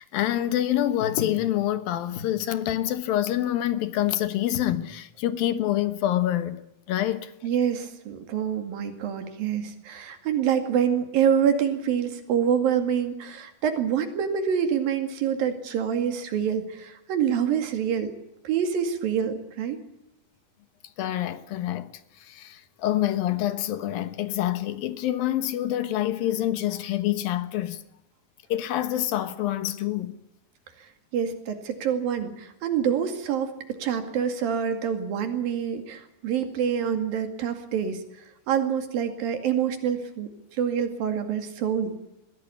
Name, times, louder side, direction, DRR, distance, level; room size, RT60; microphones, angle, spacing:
voice 1, 0.0-6.6 6.9-7.3 21.0-21.9 22.3-27.8 28.5-30.1, left 12 dB, 85° left, 3.1 m, -26 dB
voice 2, 7.4-18.1 18.4-19.8 31.1-38.0 38.5-41.9, right 8 dB, 80° right, 4.0 m, -26 dB
21.5 x 16.0 x 9.8 m
omnidirectional pair, 4.1 m